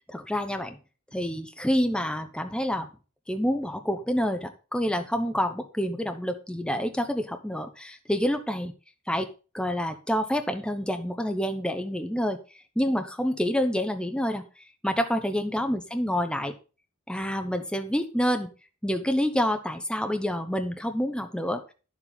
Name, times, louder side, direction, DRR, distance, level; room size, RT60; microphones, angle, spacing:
voice 1, 0.1-0.8 1.1-2.9 3.3-8.7 9.1-9.3 9.5-12.4 12.8-14.4 14.8-16.5 17.1-18.5 18.8-21.7, equal, 5° left, 7 dB, 0.7 m, -27 dB
10.5 x 7.2 x 4.1 m, 0.34 s
head